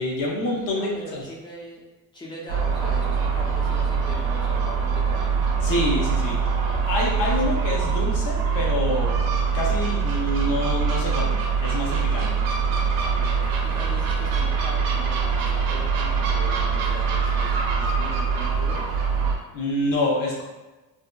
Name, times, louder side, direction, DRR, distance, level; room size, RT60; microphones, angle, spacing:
voice 1, 0.0-1.2 5.6-6.4 6.9-12.4 19.5-20.4, left 1 dB, 60° left, -2 dB, 0.6 m, -27 dB
voice 2, 0.7-1.8 2.1-5.4 13.1-18.9, equal, 15° left, -4 dB, 0.3 m, -40 dB
Gull seagull, 2.5-19.4, right 5 dB, 80° right, 0.6 m, -23 dB
2.7 x 2.1 x 2.2 m, 1.1 s
cardioid pair, 155°, 36 cm